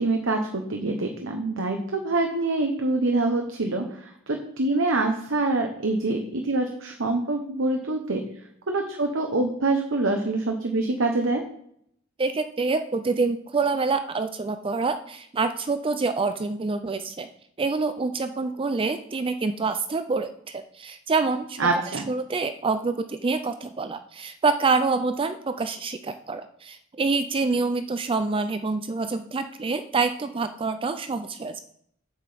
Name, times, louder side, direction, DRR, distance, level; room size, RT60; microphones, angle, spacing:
voice 1, 0.0-8.2 8.7-11.4 21.6-22.0, right 2 dB, 70° right, 4 dB, 1.1 m, -25 dB
voice 2, 12.2-17.3 17.6-21.6 21.9-31.6, right 4 dB, 25° right, 9 dB, 0.4 m, -26 dB
8.1 x 7.8 x 5.1 m, 0.69 s
head